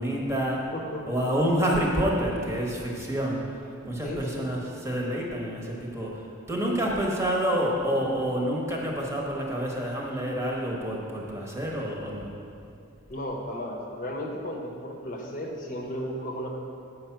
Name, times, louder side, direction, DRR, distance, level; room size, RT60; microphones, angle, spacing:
voice 1, 0.0-0.7 1.1-3.4 3.8-4.6 4.8-12.3, equal, 15° right, -2 dB, 1.1 m, -28 dB
voice 2, 0.7-1.1 4.0-4.5 13.1-16.5, equal, 40° left, 0 dB, 1.0 m, -34 dB
7.9 x 5.7 x 5.8 m, 2.6 s
head